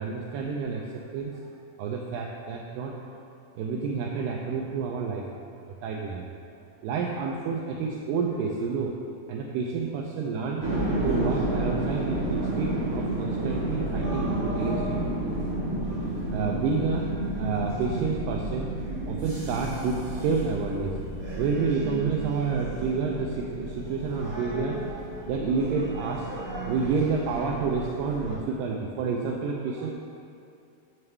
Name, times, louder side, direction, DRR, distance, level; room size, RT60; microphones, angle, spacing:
voice 1, 0.0-1.4 1.8-3.1 3.6-5.3 5.6-6.3 6.8-9.0 9.3-10.7 11.0-15.0 16.3-18.7 19.1-21.0 21.4-29.9, right 5 dB, 80° right, -1 dB, 2.0 m, -29 dB
sound 1, 10.6-28.4, right 1 dB, 65° right, 0.8 m, -31 dB
9.2 x 5.8 x 3.2 m, 2.5 s
omnidirectional pair, 4.3 m